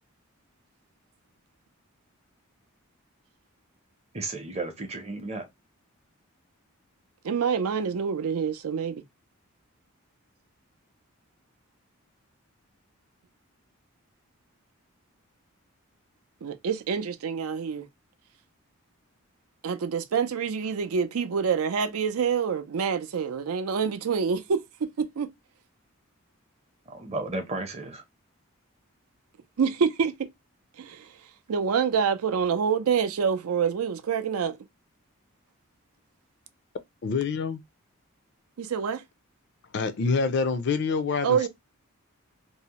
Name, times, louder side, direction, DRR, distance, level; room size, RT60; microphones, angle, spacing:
voice 1, 4.1-5.5 26.9-28.0, right 2 dB, 30° right, 0.6 m, -33 dB
voice 2, 7.2-9.0 16.4-17.9 19.6-25.3 29.6-30.3 30.8-31.1 31.5-34.6 38.6-39.0 41.2-41.5, right 6 dB, 85° right, 0.4 m, -26 dB
voice 3, 37.0-37.6 39.7-41.5, left 4 dB, 50° left, 0.4 m, -26 dB
2.7 x 2.0 x 2.8 m
head